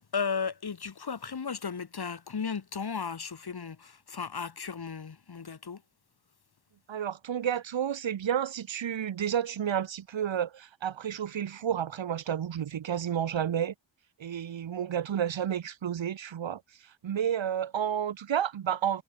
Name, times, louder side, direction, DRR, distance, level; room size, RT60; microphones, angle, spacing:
voice 1, 0.0-5.8, left 5 dB, 55° left, 2.9 m, -35 dB
voice 2, 6.9-13.7 14.2-19.0, right 9 dB, 75° right, 1.2 m, -31 dB
wide cardioid pair, 100°, 46 cm